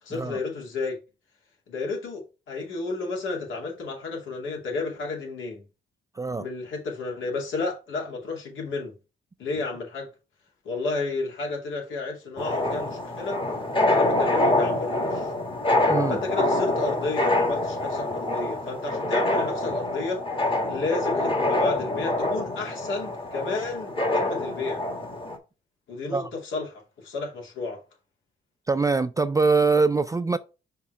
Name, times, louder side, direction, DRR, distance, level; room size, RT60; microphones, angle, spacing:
voice 1, 0.0-1.0 1.7-5.6 6.4-8.9 9.4-10.1 10.6-13.4 13.8-15.3 16.1-20.2 20.7-24.8 25.9-27.8, left 3 dB, 75° left, 2.5 m, -32 dB
voice 2, 6.2-6.5 15.8-16.2 26.1-26.3 28.7-30.4, right 4 dB, 15° right, 0.4 m, -23 dB
sound 1, 12.4-25.4, left 1 dB, 25° left, 1.6 m, -26 dB
5.7 x 3.6 x 4.5 m
cardioid pair, 90°, 20 cm